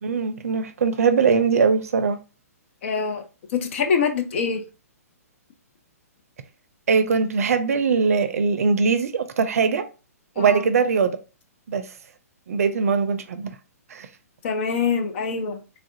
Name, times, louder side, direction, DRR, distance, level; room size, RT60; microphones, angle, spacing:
voice 1, 0.0-2.2 6.9-9.8 10.4-11.2 11.7-11.9 12.5-13.5 13.9-14.1, right 5 dB, 65° right, 0.5 m, -21 dB
voice 2, 2.8-3.2 3.5-4.6 10.4-10.7 14.4-15.6, left 5 dB, 50° left, 0.6 m, -24 dB
3.3 x 2.4 x 2.6 m
hypercardioid pair, 130°, 9 cm